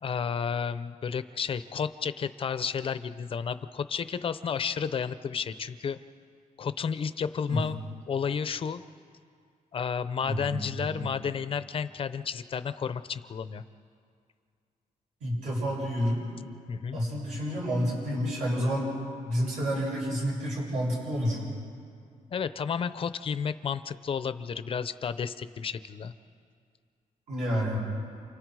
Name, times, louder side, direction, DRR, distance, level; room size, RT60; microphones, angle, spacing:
voice 1, 0.0-6.0 6.6-7.8 8.1-8.8 9.7-13.6 16.7-17.0 22.3-26.1, left 6 dB, 40° left, 12 dB, 0.7 m, -32 dB
voice 2, 10.3-11.1 15.2-16.3 16.9-18.9 19.2-21.4 27.3-27.8, equal, 60° right, -5 dB, 8.0 m, -29 dB
29.0 x 29.0 x 4.8 m, 2.2 s
wide cardioid pair, 180°, 14 cm